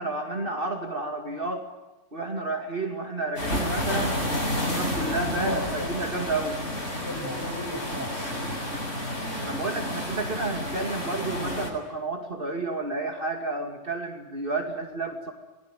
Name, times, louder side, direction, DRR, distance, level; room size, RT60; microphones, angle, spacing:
voice 1, 0.0-1.7 2.1-4.2 4.5-6.6 9.4-15.3, right 2 dB, 45° right, 4 dB, 2.7 m, -31 dB
sound 1, 3.4-11.7, left 1 dB, 60° left, 7.8 m, -30 dB
voice 2, 5.1-5.9 6.9-8.6, equal, 15° left, 2 dB, 6.9 m, -35 dB
27.5 x 21.5 x 9.2 m, 1.1 s
omnidirectional pair, 1.3 m